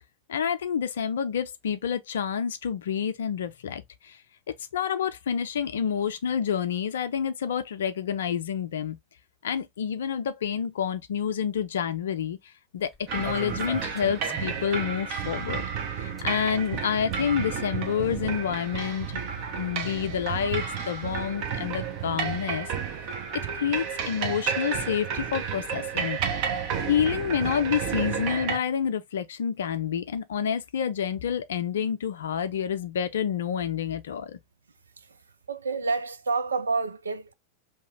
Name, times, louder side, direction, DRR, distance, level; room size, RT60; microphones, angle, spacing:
voice 1, 0.3-4.2 4.7-9.0 9.4-12.4 12.7-15.6 16.0-19.2 19.6-22.7 23.5-26.2 26.9-34.4, left 8 dB, 60° left, 0.5 m, -28 dB
sound 1, 12.8-14.8 15.0-15.1 15.4-15.5 16.0-27.7, right 2 dB, 10° right, 1.2 m, -49 dB
sound 2, 13.1-28.6, right 7 dB, 45° right, 0.8 m, -31 dB
voice 2, 35.5-37.3, right 4 dB, 75° right, 0.4 m, -29 dB
2.9 x 2.4 x 3.4 m
figure-of-eight pair, 90°, 0 cm